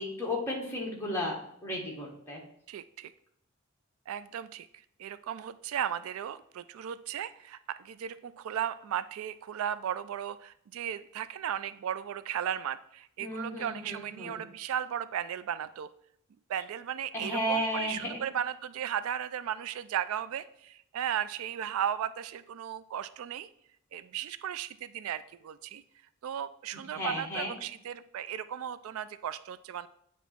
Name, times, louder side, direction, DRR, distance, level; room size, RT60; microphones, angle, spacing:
voice 1, 0.0-1.4 1.6-2.4 13.2-14.4 17.1-18.2 26.9-27.5, left 1 dB, 10° left, -3 dB, 1.5 m, -33 dB
voice 2, 2.7-3.1 4.1-4.7 5.0-15.9 16.5-23.5 23.9-25.8 26.2-29.9, right 9 dB, 75° right, 15 dB, 0.3 m, -35 dB
9.0 x 3.0 x 4.4 m, 0.72 s
head